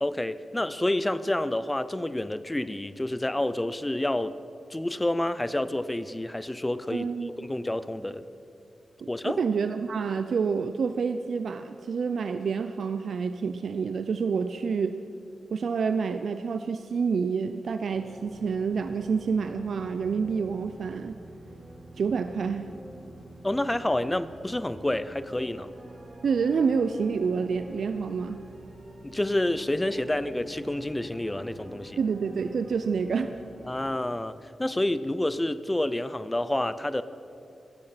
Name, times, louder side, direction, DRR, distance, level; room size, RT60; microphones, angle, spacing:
voice 1, 0.0-4.4 4.7-8.2 9.1-9.4 23.4-25.7 29.0-32.0 33.7-34.3 34.6-37.0, left 1 dB, 10° left, 14 dB, 0.5 m, -28 dB
voice 2, 6.9-7.3 9.2-15.0 15.5-21.2 22.0-22.7 26.2-28.4 32.0-33.4, right 5 dB, 65° right, 9 dB, 0.5 m, -28 dB
sound 1, 17.9-33.8, right 1 dB, 35° right, 2.9 m, -47 dB
16.0 x 14.0 x 5.8 m, 2.7 s
wide cardioid pair, 165°, 0 cm